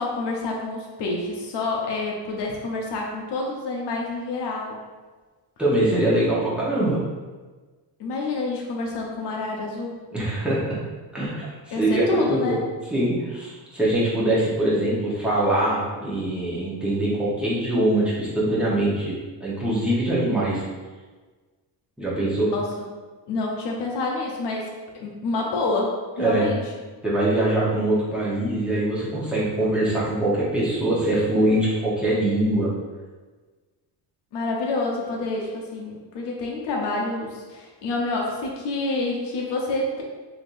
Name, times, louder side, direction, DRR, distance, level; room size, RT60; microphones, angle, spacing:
voice 1, 0.0-4.8 8.0-10.0 11.7-12.6 22.5-22.7 23.3-24.7 25.0-26.6 34.3-40.0, left 2 dB, 70° left, -1 dB, 0.7 m, -28 dB
voice 2, 5.6-7.0 10.1-10.8 11.1-12.6 12.9-19.1 19.4-20.6 22.0-22.5 26.2-26.5 27.0-32.7, right 1 dB, ahead, -8 dB, 0.8 m, -23 dB
3.4 x 2.8 x 2.5 m, 1.3 s
cardioid pair, 140°, 43 cm